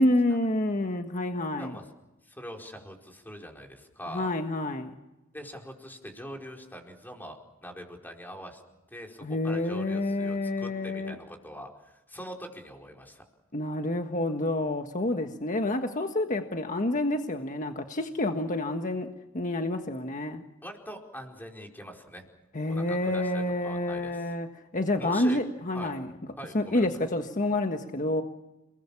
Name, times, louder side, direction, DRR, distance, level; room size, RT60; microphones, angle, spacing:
voice 1, 0.0-1.8 4.1-4.9 9.2-11.2 13.5-20.4 22.5-24.5 24.7-26.1 26.5-28.2, left 1 dB, 40° left, 5 dB, 1.5 m, -28 dB
voice 2, 2.2-4.3 5.3-8.6 8.9-13.2 20.6-22.3 22.7-24.3 25.0-25.4 25.7-25.9 26.4-26.9, equal, 10° left, 2 dB, 4.6 m, -43 dB
30.0 x 20.5 x 7.2 m, 1.0 s
head